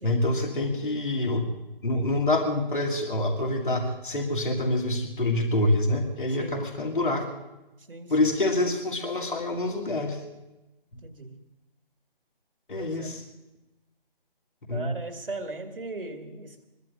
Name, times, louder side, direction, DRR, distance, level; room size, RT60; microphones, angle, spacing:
voice 1, 0.0-1.5 1.8-7.3 8.1-10.2 12.7-13.2 14.7-15.0, left 2 dB, 60° left, 3 dB, 2.3 m, -26 dB
voice 2, 11.0-11.3 12.8-13.1 14.7-16.6, right 2 dB, 65° right, 5 dB, 2.2 m, -38 dB
22.5 x 21.5 x 2.6 m, 0.99 s
figure-of-eight pair, 150°, 29 cm